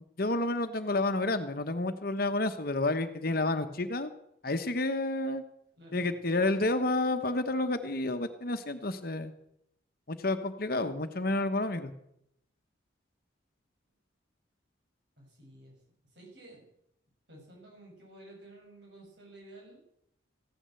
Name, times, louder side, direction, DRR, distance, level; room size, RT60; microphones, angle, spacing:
voice 1, 0.2-4.1 4.4-5.4 5.9-9.3 10.1-11.9, left 2 dB, 50° left, 9 dB, 1.1 m, -30 dB
voice 2, 5.8-6.1 15.2-15.8 16.1-16.6 17.3-19.8, right 1 dB, 60° right, -1 dB, 6.7 m, -52 dB
15.0 x 9.9 x 7.7 m, 0.76 s
head